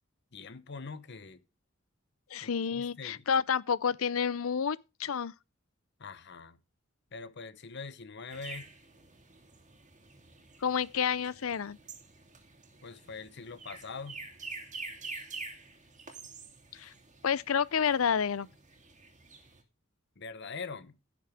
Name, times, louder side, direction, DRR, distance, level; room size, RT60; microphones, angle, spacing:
voice 1, 0.3-1.4 2.4-3.3 6.0-6.6 7.1-8.7 12.8-14.2 20.2-21.0, left 4 dB, 60° left, 1.0 m, -43 dB
voice 2, 2.3-5.3 10.6-11.8 16.7-16.9 17.2-18.5, left 7 dB, 85° left, 0.6 m, -29 dB
sound 1, 8.3-19.6, right 3 dB, 35° right, 2.7 m, -47 dB
16.5 x 6.9 x 3.6 m
head